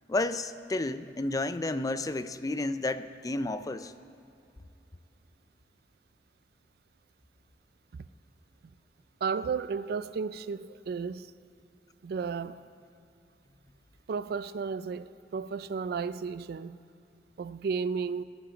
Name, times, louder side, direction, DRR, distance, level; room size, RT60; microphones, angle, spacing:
voice 1, 0.1-3.9, left 2 dB, 20° left, 0.4 m, -31 dB
voice 2, 9.2-11.3 12.0-12.6 14.1-16.8 17.4-18.2, right 5 dB, 60° right, 0.3 m, -33 dB
16.0 x 8.8 x 5.0 m
head